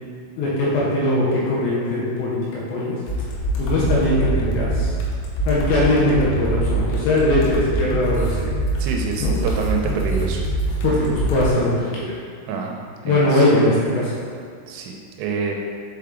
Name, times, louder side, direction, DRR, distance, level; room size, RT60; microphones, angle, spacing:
voice 1, 0.4-2.4 2.7-3.0 3.6-4.9 5.5-8.4 9.2-9.3 10.8-12.0 13.0-14.1, left 1 dB, 75° left, -6 dB, 3.0 m, -20 dB
sound 1, 3.1-11.5, right 2 dB, 90° left, 3.7 m, -24 dB
voice 2, 8.8-10.4 12.5-12.8 13.0-13.5 14.7-15.5, right 5 dB, 85° right, 1 dB, 3.2 m, -27 dB
7.3 x 4.8 x 3.7 m, 2.2 s
omnidirectional pair, 5.7 m